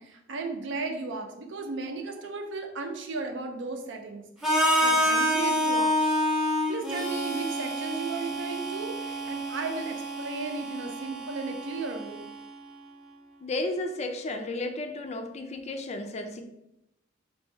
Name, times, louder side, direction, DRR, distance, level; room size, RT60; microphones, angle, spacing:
voice 1, 0.0-5.9 6.7-12.2, right 3 dB, 70° right, 4 dB, 0.6 m, -35 dB
Harmonica, 4.4-12.3, equal, ahead, 0.6 m, -28 dB
voice 2, 13.4-16.4, left 2 dB, 35° left, 6 dB, 0.4 m, -33 dB
3.1 x 2.7 x 4.5 m, 0.84 s
head